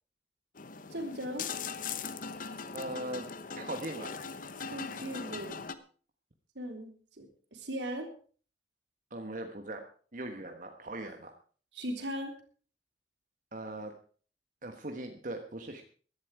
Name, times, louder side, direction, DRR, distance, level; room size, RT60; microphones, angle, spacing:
sound 1, 0.6-5.7, left 5 dB, 50° left, 0.9 m, -40 dB
voice 1, 0.9-1.5 4.6-5.6 6.6-8.1 11.7-12.3, equal, 85° right, 3 dB, 3.7 m, -38 dB
voice 2, 2.7-3.3 3.6-4.2 9.1-11.3 13.5-14.0 14.6-15.8, right 1 dB, 50° right, 4 dB, 1.3 m, -40 dB
16.0 x 12.0 x 4.8 m, 0.43 s
head